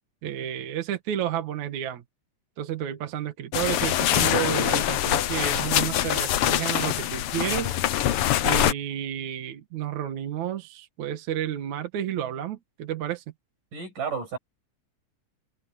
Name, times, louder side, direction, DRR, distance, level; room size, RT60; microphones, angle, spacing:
voice 1, 0.2-2.0 2.6-7.8 8.4-13.2, right 10 dB, 65° right, 2.8 m, -31 dB
sound 1, 3.5-8.7, left 12 dB, 75° left, 1.3 m, -24 dB
voice 2, 13.7-14.4, right 6 dB, 90° right, 8.1 m, -31 dB
omnidirectional pair, 3.6 m